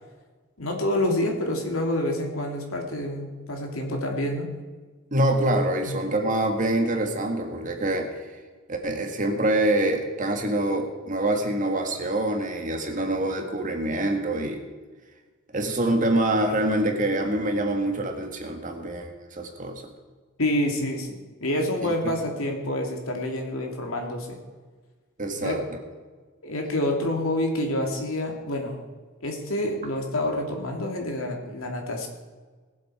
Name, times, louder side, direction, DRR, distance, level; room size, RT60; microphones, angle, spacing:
voice 1, 0.6-4.5 5.9-6.0 20.4-24.4 25.3-25.5 26.4-28.8 29.2-32.1, left 1 dB, 75° left, 2 dB, 2.5 m, -27 dB
voice 2, 5.1-8.4 8.7-14.6 15.5-19.8 25.2-25.6, right 1 dB, 40° right, 3 dB, 1.8 m, -25 dB
20.5 x 7.7 x 4.9 m, 1.4 s
head